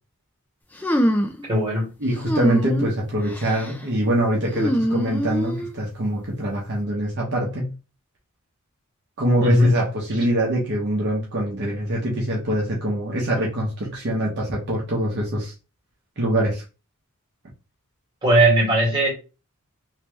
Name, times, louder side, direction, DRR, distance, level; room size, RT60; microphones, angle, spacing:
sound 1, 0.8-1.4 2.2-2.9 3.3-3.7 4.5-5.7, equal, 10° left, 0.5 m, -23 dB
voice 1, 1.5-1.9 9.4-9.9 18.2-19.1, right 1 dB, 20° right, -4 dB, 2.0 m, -18 dB
voice 2, 2.0-7.7 9.2-15.5 16.2-16.6, right 1 dB, 50° right, -3 dB, 0.9 m, -24 dB
3.2 x 2.8 x 3.3 m, 0.32 s
head